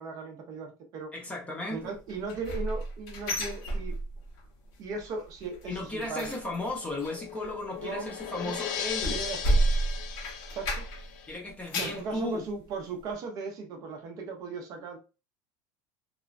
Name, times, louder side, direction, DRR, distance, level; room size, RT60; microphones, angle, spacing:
voice 1, 0.0-1.1 1.7-4.0 4.8-6.3 7.8-8.1 8.4-8.7 9.1-9.6 10.5-10.9 11.7-15.0, right 4 dB, 35° right, 2 dB, 0.5 m, -37 dB
voice 2, 1.1-1.9 5.6-9.2 11.3-12.4, left 2 dB, 10° left, -1 dB, 0.7 m, -35 dB
sound 1, 2.1-4.4 4.7-5.1 5.4-11.2 11.5-12.1 12.6-12.7 13.1-13.2, right 1 dB, 65° left, 0.9 m, -31 dB
sound 2, 6.6-11.4, left 8 dB, 85° left, 0.4 m, -38 dB
3.0 x 2.1 x 2.4 m, 0.31 s
cardioid pair, 170°, 10 cm